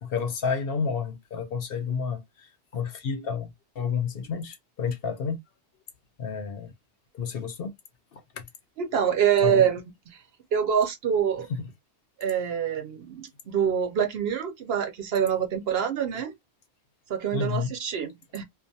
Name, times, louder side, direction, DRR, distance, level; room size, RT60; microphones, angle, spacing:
voice 1, 0.0-3.5 3.8-5.4 6.2-6.7 7.1-7.7 8.1-8.4 9.4-9.7 11.5-11.6 17.3-17.7, left 6 dB, 60° left, 0.8 m, -30 dB
voice 2, 8.8-10.2 10.5-11.5 12.2-16.3 17.1-18.4, right 8 dB, 65° right, 0.8 m, -25 dB
2.4 x 2.3 x 2.6 m
omnidirectional pair, 1.1 m